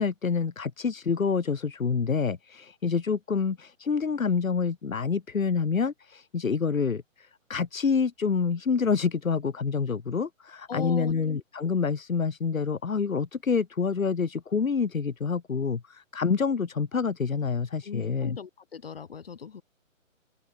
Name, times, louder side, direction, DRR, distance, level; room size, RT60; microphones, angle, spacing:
voice 1, 0.0-18.4, left 5 dB, 80° left, 4.6 m, -27 dB
voice 2, 10.7-11.1 17.8-19.6, left 6 dB, 45° left, 3.4 m, -37 dB
open air
hypercardioid pair, 180°, 40 cm